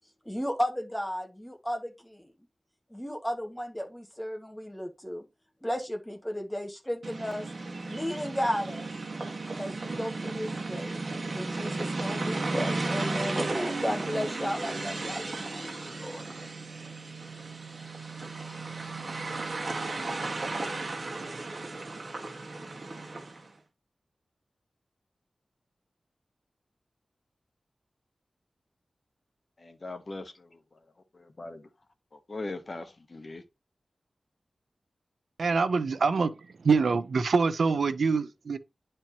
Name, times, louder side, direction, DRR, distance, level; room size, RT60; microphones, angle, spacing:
voice 1, 0.3-2.3 2.9-5.3 5.6-7.5 7.9-8.9 9.6-11.0 11.3-16.2, equal, 5° left, 1.7 m, -34 dB
sound 1, 7.0-23.5, right 3 dB, 55° right, 1.7 m, -34 dB
voice 2, 29.6-30.5 31.1-31.6 32.1-33.4, left 2 dB, 45° left, 1.1 m, -40 dB
voice 3, 35.4-36.3 36.6-38.6, right 4 dB, 90° right, 0.6 m, -25 dB
10.5 x 4.4 x 2.9 m
wide cardioid pair, 90°, 0 cm